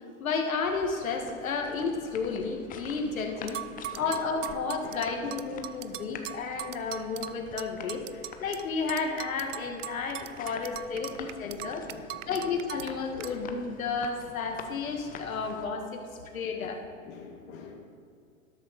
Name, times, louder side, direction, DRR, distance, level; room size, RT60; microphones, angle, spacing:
voice 1, 0.2-3.6 4.0-11.9 12.3-16.0 16.3-16.8, left 4 dB, 75° left, 4 dB, 1.9 m, -32 dB
sound 1, 0.6-15.7, left 6 dB, 20° left, 0.9 m, -47 dB
sound 2, 3.5-8.6 8.9-12.9 13.2-13.3, right 13 dB, 60° right, 0.6 m, -39 dB
voice 2, 3.7-4.2 4.5-5.3 10.5-10.7 10.9-12.5 13.2-13.4 16.6-16.7 17.0-17.7, left 6 dB, 40° left, 1 dB, 2.2 m, -47 dB
13.0 x 12.5 x 4.2 m, 2.4 s
hypercardioid pair, 115°, 41 cm